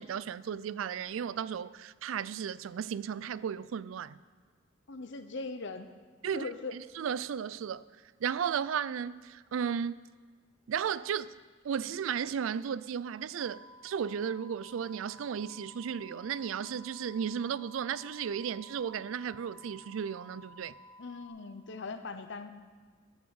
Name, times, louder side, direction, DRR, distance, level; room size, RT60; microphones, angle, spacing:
voice 1, 0.0-4.2 6.2-7.9 8.2-10.0 10.7-11.3 11.6-20.7, right 7 dB, 80° right, 0.4 m, -34 dB
voice 2, 4.9-5.9 6.3-6.7 21.0-22.5, left 3 dB, 65° left, 0.8 m, -40 dB
sound 1, 13.4-21.3, left 1 dB, 25° right, 3.8 m, -54 dB
13.0 x 6.0 x 7.1 m
head